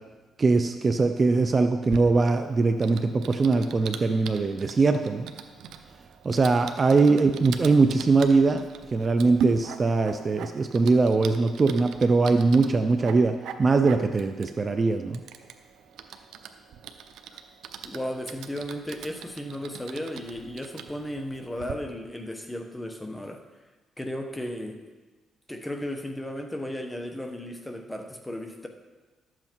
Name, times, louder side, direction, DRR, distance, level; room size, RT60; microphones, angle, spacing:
voice 1, 0.4-5.3 6.2-8.6 8.9-15.2, right 3 dB, 35° right, 8 dB, 0.5 m, -22 dB
Typing, 1.9-21.7, right 7 dB, 80° right, 0.7 m, -41 dB
voice 2, 17.8-23.4 24.0-24.8 25.5-28.7, left 1 dB, 10° left, 4 dB, 1.2 m, -35 dB
12.0 x 7.7 x 4.6 m, 1.3 s
cardioid pair, 90°, 0 cm